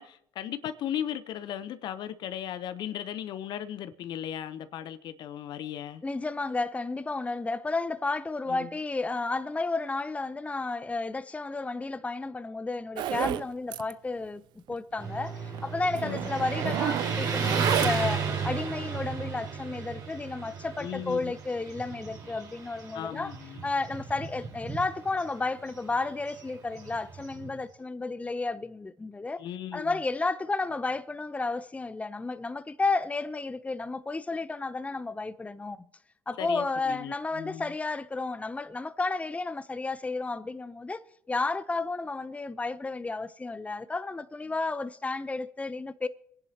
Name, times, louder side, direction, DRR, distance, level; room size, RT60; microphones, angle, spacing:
voice 1, 0.0-6.0 8.5-8.7 16.0-16.2 20.8-21.3 22.9-23.7 29.4-30.0 36.4-37.7, left 10 dB, 65° left, 0.7 m, -37 dB
voice 2, 6.0-14.4 14.7-23.3 23.6-29.4 29.7-35.8 36.3-46.1, left 3 dB, 15° left, 0.7 m, -32 dB
Zipper (clothing), 13.0-13.5 13.7-13.9 14.2-14.3 14.7-14.8 15.5-15.6 15.9-18.2, right 12 dB, 65° right, 0.5 m, -31 dB
Motorcycle, 15.0-27.6, right 5 dB, 50° right, 3.8 m, -34 dB
25.5 x 10.5 x 2.8 m
hypercardioid pair, 60°, 8 cm